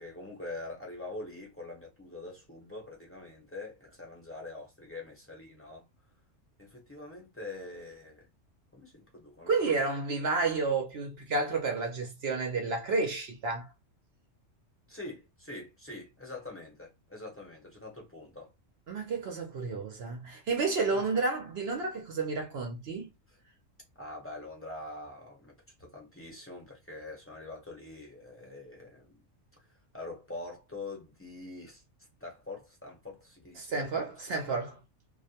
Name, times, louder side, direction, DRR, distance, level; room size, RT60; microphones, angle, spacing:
voice 1, 0.0-5.8 6.6-8.3 8.7-9.6 14.9-18.5 20.9-21.1 24.0-25.5 25.8-29.2 29.6-31.8 32.2-34.4, left 2 dB, 15° left, 0.7 m, -44 dB
voice 2, 9.5-13.7 18.9-23.1 33.6-34.8, right 4 dB, 60° right, 0.8 m, -31 dB
2.4 x 2.1 x 2.7 m
omnidirectional pair, 1.3 m